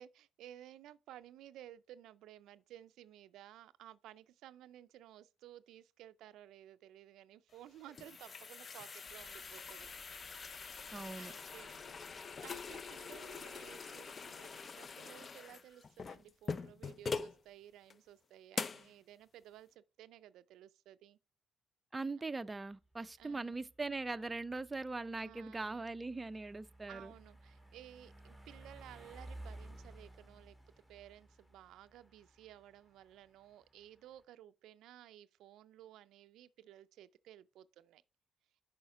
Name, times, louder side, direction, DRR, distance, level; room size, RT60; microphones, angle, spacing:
voice 1, 0.0-9.9 11.2-11.8 12.4-21.2 22.2-22.3 23.2-23.5 25.2-25.8 26.9-30.6 30.9-38.0, right 12 dB, 85° right, 0.3 m, -56 dB
sound 1, 7.5-17.4 17.9-18.0 18.5-18.9, left 5 dB, 40° left, 0.4 m, -44 dB
sound 2, 9.0-16.1, left 1 dB, 25° left, 1.1 m, -65 dB
voice 2, 10.9-11.3 21.9-27.1, right 3 dB, 20° right, 0.4 m, -41 dB
sound 3, 22.5-34.2, right 1 dB, 10° left, 1.6 m, -56 dB
7.0 x 4.9 x 4.8 m
cardioid pair, 90°, 0 cm